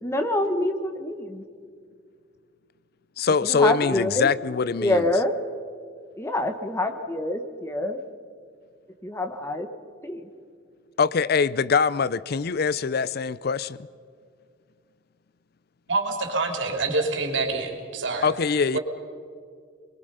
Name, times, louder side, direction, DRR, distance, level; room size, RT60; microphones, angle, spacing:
voice 1, 0.0-1.4 3.4-4.3 4.8-5.3 6.2-8.0 9.0-9.7 10.0-10.3, left 1 dB, 15° left, 1.2 m, -26 dB
voice 2, 3.2-5.1 11.0-13.8 18.2-18.8, left 5 dB, 55° left, 0.5 m, -23 dB
voice 3, 15.9-18.3 18.7-18.8, right 3 dB, 80° right, 3.2 m, -26 dB
26.5 x 21.5 x 5.6 m
head